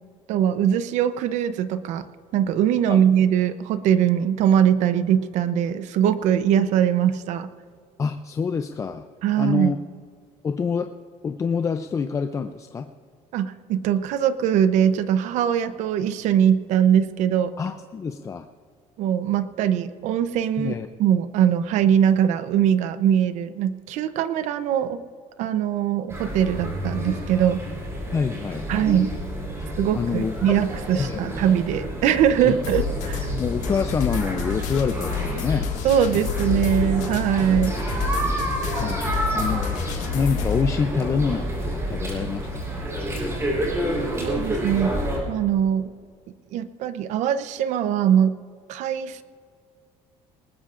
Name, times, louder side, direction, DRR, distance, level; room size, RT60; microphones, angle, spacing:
voice 1, 0.3-2.0 2.3-7.5 9.2-9.7 13.3-17.5 19.0-20.7 21.0-25.0 25.4-27.6 28.7-29.1 29.8-33.3 35.8-37.8 44.2-45.0 45.3-45.9 46.5-48.4 48.7-49.2, right 9 dB, 70° right, 13 dB, 0.7 m, -21 dB
voice 2, 8.0-9.0 9.4-9.8 10.4-10.9 11.2-12.9 17.6-18.5 20.6-20.9 28.1-28.9 29.6-29.7 29.9-30.6 30.9-31.4 32.5-32.6 33.3-35.7 38.2-38.4 38.8-39.8 40.1-42.8, left 5 dB, 25° left, 8 dB, 0.4 m, -27 dB
sound 1, 26.1-45.2, right 1 dB, 20° right, 4.0 m, -29 dB
sound 2, 32.6-40.6, left 7 dB, 70° left, 1.8 m, -29 dB
19.5 x 19.5 x 2.5 m, 2.1 s
cardioid pair, 150°, 13 cm